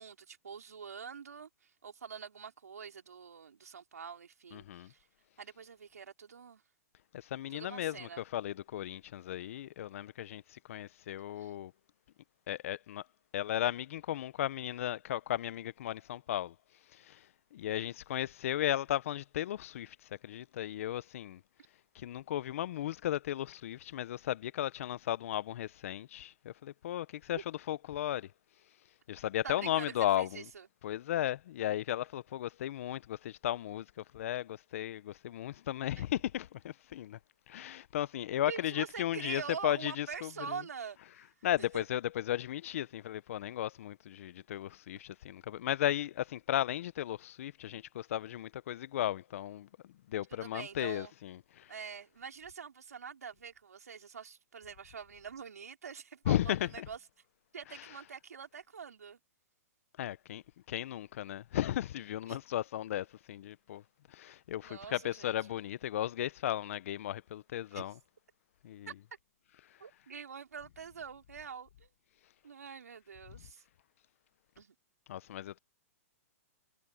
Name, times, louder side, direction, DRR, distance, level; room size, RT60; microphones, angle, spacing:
voice 1, 0.0-5.1 5.4-6.6 7.5-8.2 11.4-11.5 29.4-30.7 36.0-36.1 38.5-41.3 41.7-41.8 50.4-51.1 51.7-57.0 57.5-59.2 62.3-62.4 64.6-65.4 67.7-67.9 68.9-69.0 69.8-71.9 72.4-73.6 74.6-74.7, right 6 dB, 85° right, 4.3 m, -45 dB
voice 2, 4.5-4.9 7.1-11.7 12.5-13.0 13.3-16.5 16.9-21.4 21.9-28.3 29.1-30.4 30.8-37.2 37.5-40.6 41.4-51.7 56.3-56.9 60.0-63.8 64.1-67.9 68.6-68.9 75.1-75.6, left 12 dB, 60° left, 1.0 m, -35 dB
hypercardioid pair, 125°, 8 cm